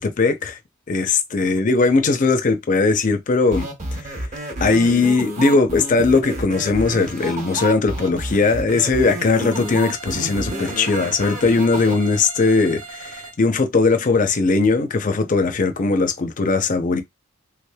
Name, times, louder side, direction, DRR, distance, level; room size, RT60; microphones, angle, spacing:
voice 1, 0.0-0.6 0.9-3.7 4.6-17.0, left 3 dB, 40° left, 0.5 m, -19 dB
sound 1, 3.5-11.9, right 1 dB, 35° right, 0.8 m, -30 dB
sound 2, 9.5-13.4, right 4 dB, 75° right, 0.9 m, -38 dB
3.4 x 3.2 x 2.2 m
head